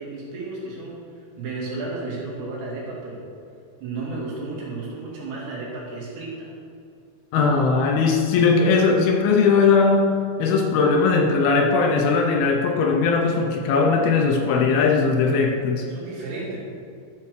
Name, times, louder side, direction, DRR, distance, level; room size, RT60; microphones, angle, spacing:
voice 1, 0.0-3.3 3.8-6.5 15.9-16.6, right 3 dB, 85° right, -4 dB, 4.7 m, -33 dB
voice 2, 7.3-10.1 10.4-15.9, left 4 dB, 75° left, 2 dB, 2.5 m, -19 dB
12.5 x 6.0 x 6.5 m, 2.4 s
omnidirectional pair, 4.9 m